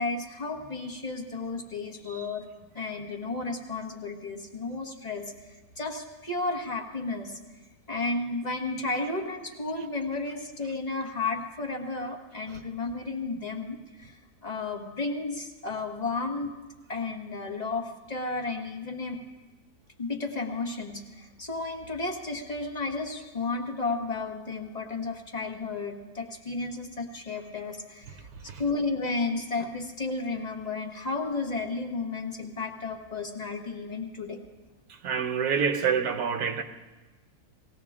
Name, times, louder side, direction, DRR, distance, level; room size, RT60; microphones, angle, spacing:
voice 1, 0.0-2.4 2.7-7.4 7.9-16.5 16.9-19.2 20.0-28.3 28.6-34.4, left 3 dB, 25° left, 1.5 m, -33 dB
voice 2, 35.0-36.6, right 7 dB, 75° right, 1.3 m, -27 dB
19.5 x 16.5 x 3.6 m
omnidirectional pair, 1.7 m